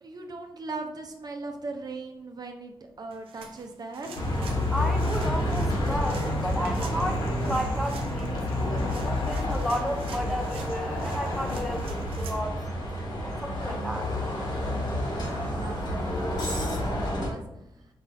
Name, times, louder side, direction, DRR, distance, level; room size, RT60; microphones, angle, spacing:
voice 1, 0.0-4.1 15.1-17.4, right 3 dB, 45° right, 3 dB, 0.6 m, -39 dB
sound 1, 3.1-12.4, right 5 dB, 90° right, 0.5 m, -47 dB
Human voice / Acoustic guitar, 4.0-12.0, left 4 dB, 90° left, 0.5 m, -41 dB
Bus, 4.1-17.3, left 1 dB, 55° left, 1.7 m, -29 dB
voice 2, 4.7-12.6 13.4-14.1, equal, ahead, 2 dB, 0.8 m, -33 dB
4.9 x 2.4 x 4.1 m, 0.83 s
cardioid pair, 60°, 9 cm